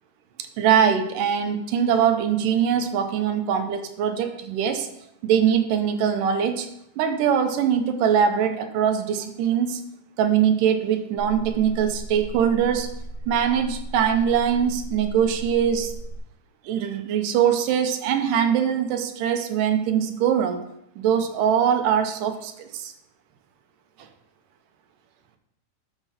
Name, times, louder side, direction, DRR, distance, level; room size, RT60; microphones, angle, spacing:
voice 1, 0.4-4.9 5.2-6.7 7.0-9.8 10.2-12.9 13.3-15.9 16.7-20.6 21.0-22.9, right 8 dB, 85° right, 7 dB, 2.4 m, -22 dB
sound 1, 11.2-16.2, right 2 dB, 50° left, 3.7 m, -36 dB
13.0 x 5.9 x 4.1 m, 0.79 s
omnidirectional pair, 3.7 m